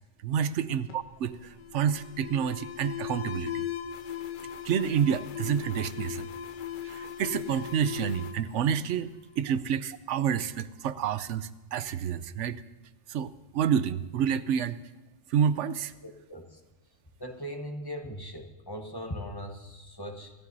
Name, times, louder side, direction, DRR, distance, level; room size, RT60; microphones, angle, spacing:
voice 1, 0.2-3.7 4.6-6.3 6.8-12.6 13.1-14.8 15.3-15.9, right 8 dB, 85° right, 14 dB, 1.0 m, -29 dB
Alarm, 0.9-9.5, left 10 dB, 55° left, 0.7 m, -38 dB
voice 2, 16.0-16.6 17.2-20.3, equal, 20° left, 4 dB, 1.1 m, -39 dB
25.5 x 14.5 x 2.7 m, 1.1 s
omnidirectional pair, 1.2 m